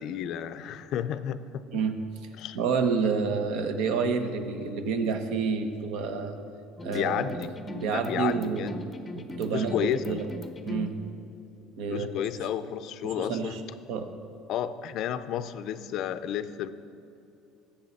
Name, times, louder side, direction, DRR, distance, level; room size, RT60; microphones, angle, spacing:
voice 1, 0.0-1.8 2.4-2.6 6.9-7.5 7.9-8.8 9.5-10.2 11.9-13.6 14.5-16.7, left 10 dB, 50° left, 13 dB, 0.4 m, -32 dB
voice 2, 2.5-6.4 6.8-7.4 7.7-8.7 9.1-10.3 10.7-11.0 11.8-12.1 12.4-12.5 13.0-13.6 13.9-14.1, right 5 dB, 65° right, 7 dB, 1.0 m, -29 dB
sound 1, 6.8-10.9, left 1 dB, 10° left, 0.7 m, -39 dB
19.0 x 7.9 x 4.1 m, 2.8 s
cardioid pair, 165°, 0 cm